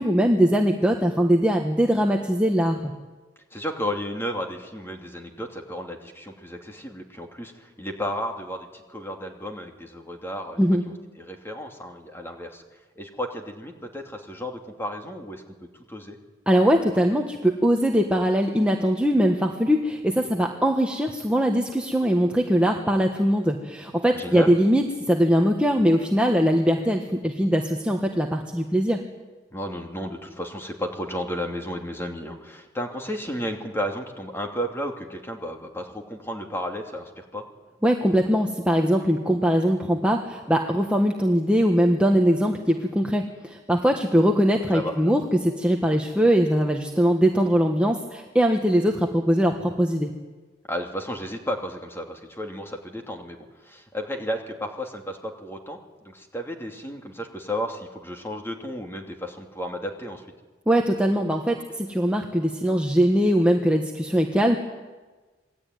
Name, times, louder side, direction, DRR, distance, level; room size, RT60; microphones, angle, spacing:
voice 1, 0.0-2.9 10.6-10.8 16.5-29.0 37.8-50.1 60.7-64.6, equal, 5° right, 1 dB, 1.5 m, -21 dB
voice 2, 3.5-10.6 10.9-12.6 13.0-16.2 24.2-24.5 29.5-37.4 44.7-45.1 50.7-60.2, equal, 10° left, 3 dB, 2.8 m, -33 dB
27.0 x 20.5 x 9.5 m, 1.3 s
head